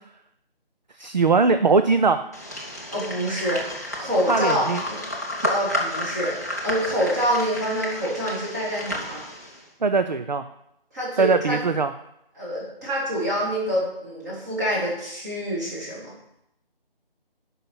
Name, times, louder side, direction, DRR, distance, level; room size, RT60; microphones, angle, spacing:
voice 1, 1.0-2.2 4.3-4.8 9.8-10.4 11.2-11.9, right 4 dB, 50° right, 9 dB, 0.5 m, -20 dB
sound 1, 2.3-9.6, left 1 dB, 15° left, 0.7 m, -31 dB
voice 2, 2.9-5.0 5.5-6.4 6.6-9.2 10.9-11.6 12.4-16.1, equal, 20° right, -6 dB, 2.5 m, -26 dB
8.9 x 5.6 x 5.5 m, 0.80 s
figure-of-eight pair, 170°, 30 cm